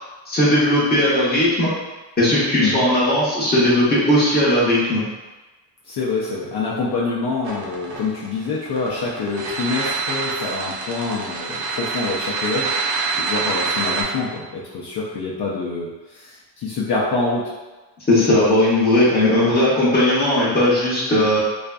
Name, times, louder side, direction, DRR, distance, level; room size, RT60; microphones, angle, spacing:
voice 1, 0.3-1.7 2.2-5.0 18.1-21.4, left 1 dB, 20° left, -7 dB, 0.7 m, -17 dB
voice 2, 5.9-12.7 13.2-17.4, left 3 dB, 60° left, -6 dB, 0.5 m, -26 dB
sound 1, 7.4-14.0, right 4 dB, 75° right, 0.7 m, -26 dB
2.5 x 2.4 x 2.2 m, 1.2 s
wide cardioid pair, 150°, 46 cm